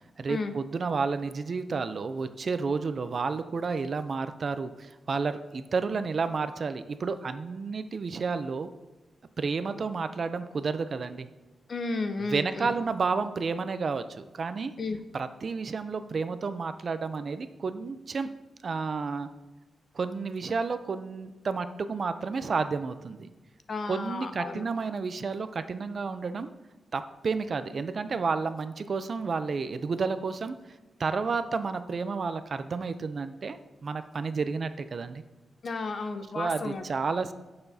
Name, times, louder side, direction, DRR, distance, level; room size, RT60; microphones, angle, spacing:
voice 1, 0.2-8.7 9.4-11.3 12.3-14.7 15.1-18.3 18.6-19.3 19.9-23.3 23.9-26.5 26.9-30.6 31.0-35.2 36.3-37.3, right 4 dB, 45° right, 10 dB, 0.4 m, -31 dB
voice 2, 11.7-12.7 14.8-15.0 23.7-24.7 35.6-36.8, left 3 dB, 45° left, 8 dB, 0.7 m, -33 dB
15.5 x 6.8 x 2.7 m, 1.1 s
wide cardioid pair, 140°, 0 cm